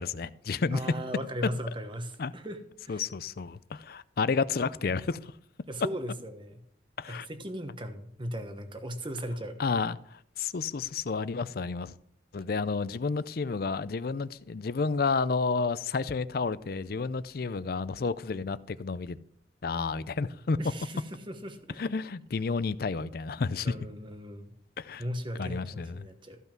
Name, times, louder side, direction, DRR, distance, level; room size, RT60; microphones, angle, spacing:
voice 1, 0.0-0.8 2.2-2.3 2.9-5.3 7.0-7.3 9.6-11.9 12.3-19.2 19.6-20.6 21.8-23.7 24.8-25.0 25.4-26.1, left 4 dB, 55° left, 0.5 m, -31 dB
voice 2, 0.7-3.1 5.7-6.6 7.1-9.6 20.6-21.8 23.6-24.5 25.0-26.4, equal, 30° right, 1.2 m, -37 dB
14.5 x 5.5 x 5.9 m
head